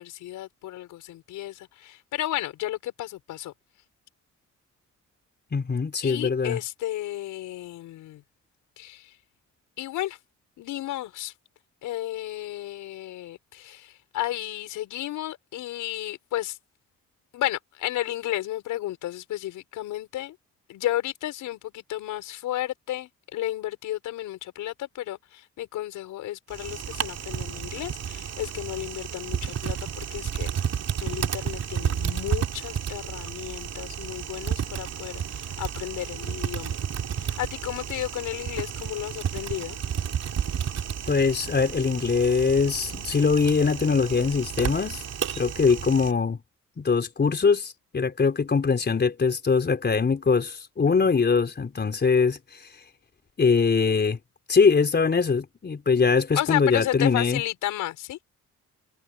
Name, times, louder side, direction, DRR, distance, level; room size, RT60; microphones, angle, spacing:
voice 1, 0.0-3.5 6.0-8.2 8.8-9.2 9.8-10.2 10.6-11.3 11.8-16.6 17.3-20.4 20.7-30.5 31.0-36.8 37.1-39.8 56.3-58.2, left 14 dB, 85° left, 6.0 m, -33 dB
voice 2, 5.5-6.6 41.1-45.0 45.4-46.4 46.8-52.7 53.4-54.2 54.5-57.4, left 5 dB, 35° left, 4.4 m, -22 dB
Typing, 26.5-46.1, right 8 dB, 60° right, 2.7 m, -32 dB
cardioid pair, 90°, 30 cm